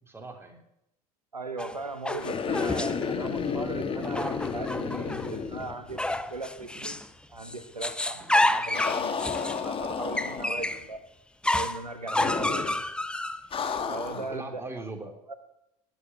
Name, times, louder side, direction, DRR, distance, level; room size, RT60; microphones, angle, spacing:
voice 1, 0.0-0.6 12.1-12.5 14.1-15.2, right 3 dB, 10° right, 3 dB, 3.5 m, -40 dB
voice 2, 1.3-6.9 7.3-11.0 11.5-12.7 13.9-14.6 15.3-15.4, right 3 dB, 90° right, 9 dB, 1.2 m, -38 dB
sound 1, 1.6-3.1 4.0-5.4 6.0-7.1 7.4-10.8 11.4-13.8, left 1 dB, 5° left, 0.9 m, -30 dB
sound 2, 2.2-6.3 6.6-6.7 8.7-10.7 12.1-12.8 13.5-14.4, left 6 dB, 25° left, 1.8 m, -32 dB
19.0 x 8.9 x 8.1 m, 0.83 s
figure-of-eight pair, 70°, 20 cm